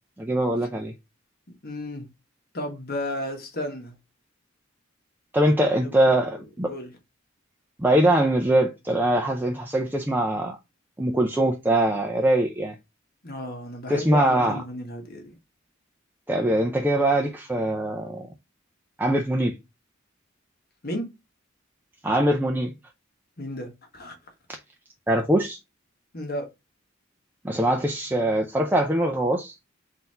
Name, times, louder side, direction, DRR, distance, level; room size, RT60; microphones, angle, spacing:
voice 1, 0.2-0.9 5.3-6.7 7.8-10.6 11.0-12.8 13.9-14.6 16.3-18.3 19.0-19.6 22.0-22.8 25.1-25.6 27.4-29.5, right 1 dB, 10° right, 0.5 m, -22 dB
voice 2, 1.6-2.1 2.5-3.9 5.4-6.4 6.7-6.9 13.2-15.4 20.8-21.1 23.4-24.1 26.1-26.5, left 1 dB, 50° left, 1.3 m, -33 dB
4.0 x 2.7 x 4.2 m
head